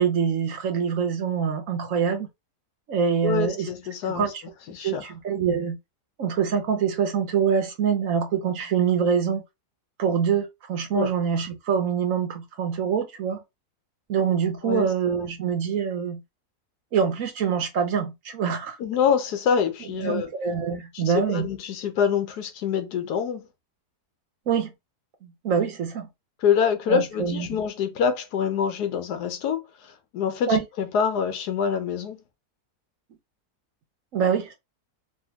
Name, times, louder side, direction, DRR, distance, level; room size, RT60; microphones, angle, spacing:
voice 1, 0.0-2.3 2.9-3.7 4.1-4.3 4.8-5.8 6.2-9.4 10.0-13.4 14.1-16.2 16.9-18.8 20.0-21.5 24.5-24.7 25.2-26.1 26.9-27.5 30.5-30.6 34.1-34.5, right 7 dB, 60° right, 1.2 m, -25 dB
voice 2, 3.2-4.3 4.7-5.1 10.9-11.1 14.6-14.9 18.8-20.3 20.9-23.5 26.4-32.2, left 7 dB, 80° left, 1.3 m, -26 dB
3.3 x 2.8 x 2.8 m
omnidirectional pair, 1.7 m